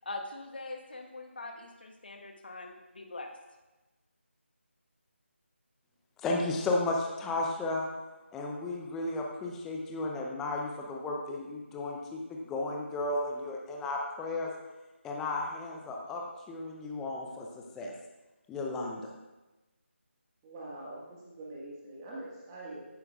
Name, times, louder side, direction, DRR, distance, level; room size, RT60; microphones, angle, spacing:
voice 1, 0.0-3.3, left 2 dB, 50° left, 3 dB, 1.4 m, -42 dB
voice 2, 6.2-7.9 8.3-14.5 15.0-17.9 18.5-19.1, left 2 dB, 5° left, 0 dB, 0.5 m, -34 dB
voice 3, 20.4-23.0, right 1 dB, 15° right, -6 dB, 1.6 m, -44 dB
15.0 x 10.0 x 2.4 m, 1.1 s
figure-of-eight pair, 160°, 7 cm